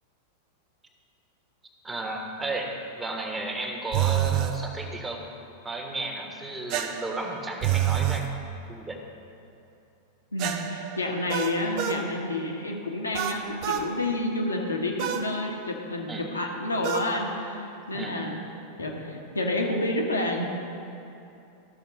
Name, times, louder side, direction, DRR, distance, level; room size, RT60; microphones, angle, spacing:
voice 1, 1.8-5.2 5.6-8.4 8.7-9.0 16.1-16.3 17.9-18.2, right 2 dB, 15° right, 1 dB, 1.4 m, -33 dB
sound 1, 3.9-4.6 6.7-8.3 10.4-12.0 13.1-13.9 15.0-15.3 16.8-17.1, right 11 dB, 40° right, 0.7 m, -27 dB
voice 2, 10.3-18.4 18.8-20.4, left 1 dB, 80° left, 0 dB, 1.4 m, -29 dB
13.5 x 6.5 x 5.2 m, 2.8 s
figure-of-eight pair, 90°, 0 cm